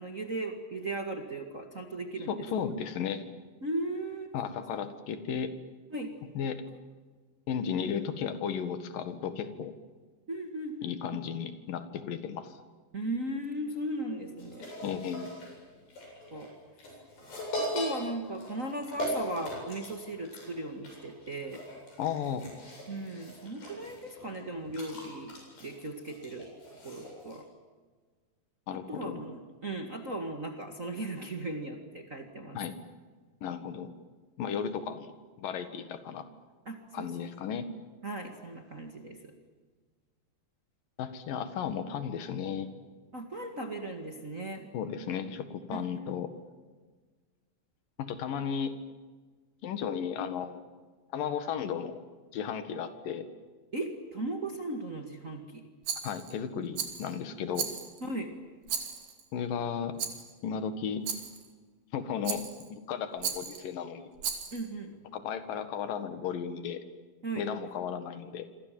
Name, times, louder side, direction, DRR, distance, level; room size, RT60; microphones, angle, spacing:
voice 1, 0.0-2.4 3.6-4.3 5.9-6.1 10.3-10.9 12.9-14.7 16.3-16.5 17.6-21.6 22.9-26.5 26.8-27.5 28.7-32.6 36.7-37.1 38.0-39.3 43.1-44.7 45.7-46.1 53.7-55.6 58.0-58.3 64.5-64.9 67.2-67.5, right 1 dB, 30° right, 4 dB, 1.8 m, -37 dB
voice 2, 2.3-3.2 4.3-5.5 6.3-6.7 7.5-9.7 10.8-12.5 14.8-15.3 22.0-22.5 28.7-29.2 32.5-32.8 33.4-33.9 34.4-35.1 35.4-36.3 36.9-37.7 41.0-42.7 44.7-46.3 48.0-48.7 49.6-50.6 51.1-52.0 52.3-53.3 56.0-57.7 59.3-60.0 60.4-61.1 61.9-64.1 65.1-66.8 67.4-68.5, left 7 dB, 75° left, 10 dB, 3.4 m, -34 dB
sound 1, 14.4-27.4, equal, 90° left, 9.8 m, -40 dB
Rattle, 55.8-56.3 56.7-57.1 57.5-58.1 58.7-59.2 60.0-60.3 61.0-61.5 62.2-62.7 63.2-63.6 64.2-64.7, right 7 dB, 80° right, 4.4 m, -36 dB
28.0 x 25.0 x 7.7 m, 1.4 s
omnidirectional pair, 4.1 m